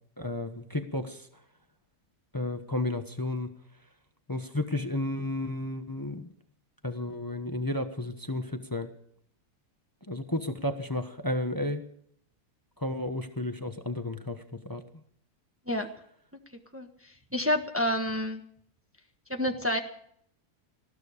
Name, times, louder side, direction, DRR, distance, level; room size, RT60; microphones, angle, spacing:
voice 1, 0.2-1.3 2.3-3.5 4.3-6.3 6.8-8.9 10.1-11.8 12.8-14.8, left 1 dB, 15° left, 7 dB, 1.1 m, -32 dB
voice 2, 17.3-18.4 19.3-19.8, left 1 dB, 10° right, 4 dB, 1.3 m, -28 dB
19.5 x 14.5 x 5.0 m, 0.67 s
omnidirectional pair, 1.6 m